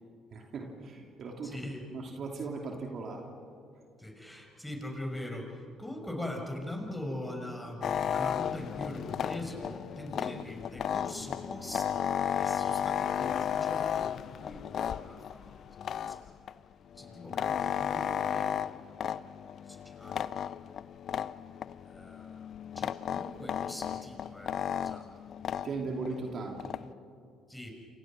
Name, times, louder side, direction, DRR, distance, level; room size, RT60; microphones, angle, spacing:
voice 1, 0.3-1.6 1.9-3.3 25.6-26.7, right 4 dB, 50° right, 2 dB, 2.9 m, -38 dB
voice 2, 1.4-1.8 4.0-15.5 16.1-16.4 17.0-18.8 19.7-20.5 21.8-22.5 22.8-25.1 27.5-27.7, left 1 dB, 5° left, 2 dB, 6.6 m, -42 dB
sound 1, 7.8-16.5 16.9-26.9, left 9 dB, 55° left, 0.5 m, -34 dB
29.0 x 29.0 x 6.3 m, 2.4 s
hypercardioid pair, 50°, 0 cm